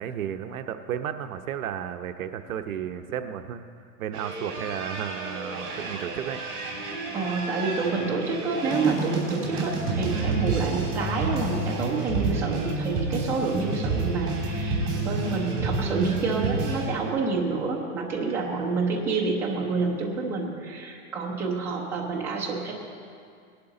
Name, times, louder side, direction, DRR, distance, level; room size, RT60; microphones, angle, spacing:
voice 1, 0.0-3.6 4.0-6.4, right 9 dB, 65° right, 8 dB, 0.8 m, -33 dB
sound 1, 4.1-16.9, right 3 dB, 30° right, 3.2 m, -29 dB
voice 2, 7.1-22.7, right 4 dB, 5° right, -4 dB, 0.7 m, -28 dB
19.0 x 11.5 x 3.9 m, 2.3 s
supercardioid pair, 170°, 45 cm